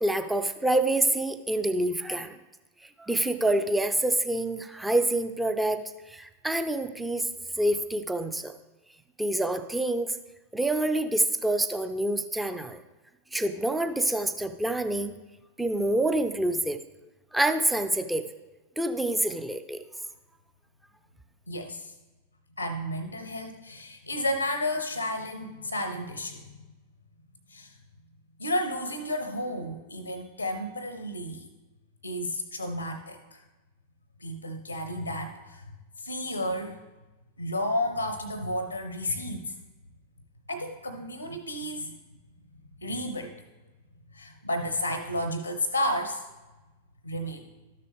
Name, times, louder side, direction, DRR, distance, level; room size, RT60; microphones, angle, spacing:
voice 1, 0.0-2.4 3.0-5.8 6.1-7.3 7.6-8.5 9.2-10.1 10.5-12.8 13.3-15.1 15.6-16.8 17.3-18.2 18.8-19.8, right 1 dB, 5° right, 8 dB, 0.6 m, -27 dB
voice 2, 21.5-21.9 22.6-26.6 27.5-27.7 28.4-31.5 32.0-33.4 34.2-35.6 36.0-36.8 37.4-39.5 40.5-41.9 42.8-43.3 44.1-46.3 47.0-47.5, left 1 dB, 85° left, 9 dB, 0.7 m, -32 dB
12.5 x 6.7 x 3.4 m, 1.1 s
figure-of-eight pair, 90°, 0 cm